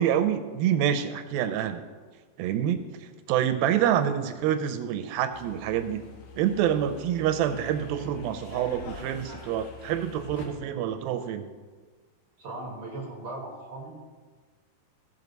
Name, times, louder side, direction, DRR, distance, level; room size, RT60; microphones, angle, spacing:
voice 1, 0.0-1.8 2.4-2.9 3.3-6.1 6.4-11.5, right 10 dB, 80° right, 10 dB, 2.3 m, -27 dB
sound 1, 5.3-10.5, left 5 dB, 60° left, 2.7 m, -45 dB
voice 2, 12.4-13.9, right 2 dB, 60° right, -1 dB, 1.3 m, -38 dB
16.0 x 6.2 x 5.3 m, 1.4 s
omnidirectional pair, 4.5 m